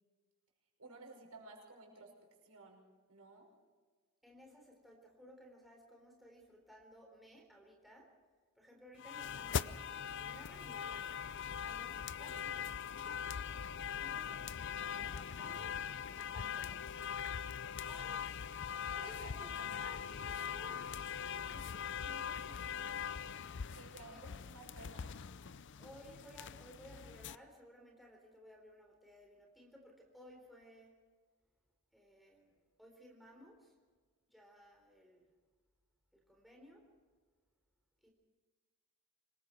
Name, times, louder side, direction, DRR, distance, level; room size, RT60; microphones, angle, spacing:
voice 1, 0.8-2.1 2.4-3.5 14.0-14.3 19.0-19.7 20.4-20.5 21.5-23.1 23.7-25.1, right 3 dB, 85° right, 1 dB, 5.9 m, -56 dB
voice 2, 4.2-8.1 8.6-11.2 11.6-13.2 14.0-14.3 14.9-17.4 17.9-18.4 18.9-19.3 19.7-20.9 21.4-21.7 24.2-24.3 25.8-30.9 31.9-33.7 34.3-35.3 36.3-36.8 38.0-38.1, equal, ahead, -1 dB, 3.9 m, -58 dB
sound 1, 9.0-27.4, left 7 dB, 55° left, 0.5 m, -42 dB
26.5 x 21.5 x 4.6 m, 1.4 s
head